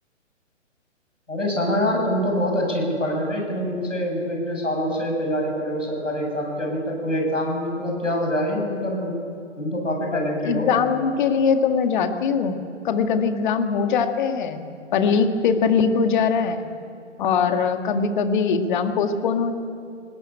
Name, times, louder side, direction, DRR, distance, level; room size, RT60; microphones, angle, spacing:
voice 1, 1.3-9.2 9.6-10.7, equal, 80° left, 1 dB, 7.1 m, -25 dB
voice 2, 10.1-12.6 12.8-16.7 17.2-19.5, left 6 dB, 40° left, 7 dB, 2.0 m, -22 dB
20.5 x 19.5 x 8.9 m, 2.4 s
figure-of-eight pair, 125°, 37 cm